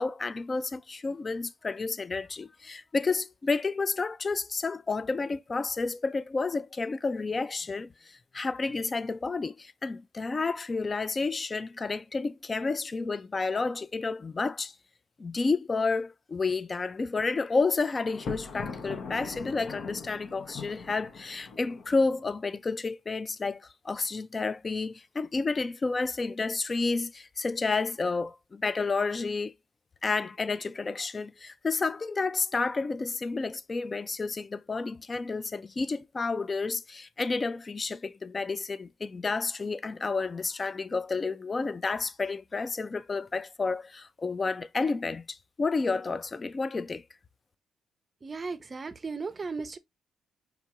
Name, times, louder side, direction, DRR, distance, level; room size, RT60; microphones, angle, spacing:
voice 1, 0.0-14.7 15.2-29.5 30.0-47.0, left 4 dB, 30° left, 0.4 m, -30 dB
Thunder, 18.1-22.2, left 4 dB, 60° left, 0.7 m, -41 dB
voice 2, 48.2-49.8, right 4 dB, 30° right, 0.5 m, -36 dB
4.7 x 2.5 x 2.9 m
cardioid pair, 90°, 0 cm